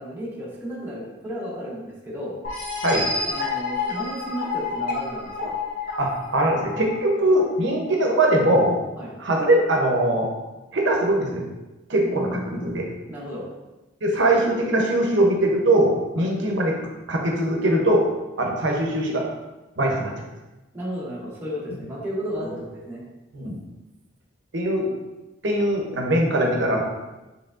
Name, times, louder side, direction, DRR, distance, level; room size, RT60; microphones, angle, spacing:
voice 1, 0.0-2.4 3.2-5.5 9.0-9.1 12.0-13.4 16.1-16.3 20.7-23.0, equal, 10° right, -7 dB, 0.9 m, -33 dB
sound 1, 2.4-7.9, left 4 dB, 45° left, 0.7 m, -29 dB
voice 2, 6.0-8.8 9.2-10.3 10.7-11.4 11.9-12.9 14.0-16.7 17.1-18.1 18.4-19.3 19.8-20.1 23.3-23.6 24.5-24.9 25.4-26.8, right 1 dB, 70° right, 0 dB, 0.7 m, -21 dB
4.6 x 3.2 x 2.5 m, 1.1 s
head